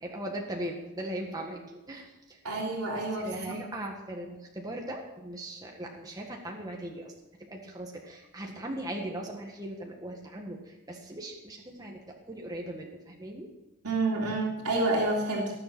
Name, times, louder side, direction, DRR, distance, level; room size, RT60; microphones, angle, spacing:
voice 1, 0.0-2.4 3.2-7.1 7.5-13.5, right 1 dB, 15° right, 0 dB, 1.6 m, -39 dB
voice 2, 2.4-3.6 13.8-15.5, right 2 dB, 85° right, -2 dB, 3.2 m, -29 dB
19.0 x 7.9 x 6.1 m, 1.0 s
head